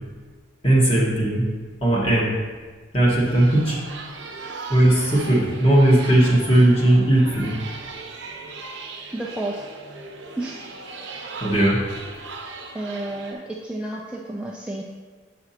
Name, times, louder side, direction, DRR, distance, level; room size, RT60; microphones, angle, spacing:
voice 1, 0.6-1.5 1.8-2.3 2.9-3.8 4.7-7.5 11.4-11.8, right 1 dB, 30° left, -5 dB, 1.6 m, -17 dB
sound 1, 3.1-13.3, right 3 dB, 70° right, 0.8 m, -38 dB
voice 2, 9.1-9.6 10.4-10.6 12.7-14.8, right 1 dB, 5° right, -3 dB, 0.3 m, -31 dB
7.5 x 6.0 x 2.9 m, 1.5 s
head